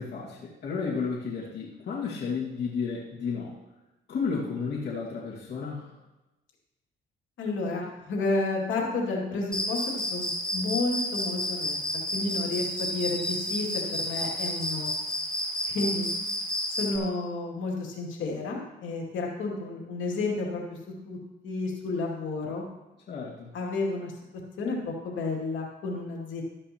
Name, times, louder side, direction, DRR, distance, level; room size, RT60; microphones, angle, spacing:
voice 1, 0.0-3.6 4.1-5.9 23.1-23.5, left 5 dB, 60° left, -5 dB, 2.1 m, -32 dB
voice 2, 7.4-11.8 12.1-14.9 15.7-16.1 16.8-20.8 21.1-21.2 21.4-22.7 23.5-24.1 24.6-26.4, left 3 dB, 75° left, -1 dB, 2.5 m, -31 dB
Cricket, 9.5-17.0, left 1 dB, 5° left, 1.3 m, -31 dB
13.0 x 9.7 x 3.0 m, 1.0 s
cardioid pair, 90°, 20 cm